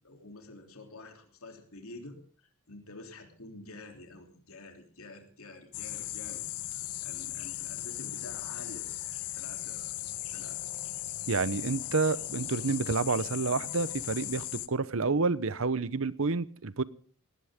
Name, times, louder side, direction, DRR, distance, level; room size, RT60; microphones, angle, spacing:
voice 1, 0.0-6.4 7.0-8.9 9.3-9.9 10.3-10.7, left 2 dB, 70° left, 4 dB, 3.2 m, -48 dB
sound 1, 5.7-14.7, left 14 dB, 90° left, 0.9 m, -37 dB
voice 2, 11.3-16.8, right 4 dB, 60° right, 17 dB, 0.8 m, -29 dB
20.0 x 17.5 x 3.7 m, 0.43 s
head